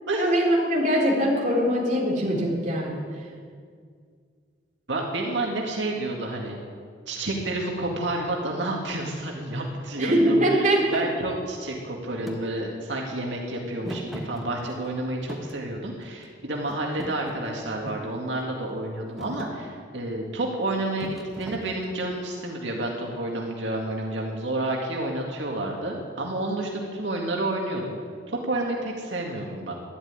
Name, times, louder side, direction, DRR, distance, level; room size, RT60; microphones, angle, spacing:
voice 1, 0.1-3.0 10.0-11.0, equal, 40° right, -3 dB, 3.7 m, -22 dB
voice 2, 4.9-6.6 7.1-28.0 28.3-29.7, right 2 dB, 85° right, -1 dB, 2.1 m, -30 dB
Thump thud, 12.3-12.4 13.8-14.9 15.3-16.3 16.7-18.1 18.7-18.9 19.2-19.6 21.0-22.1, equal, ahead, 1.3 m, -38 dB
12.5 x 11.0 x 9.7 m, 2.1 s
head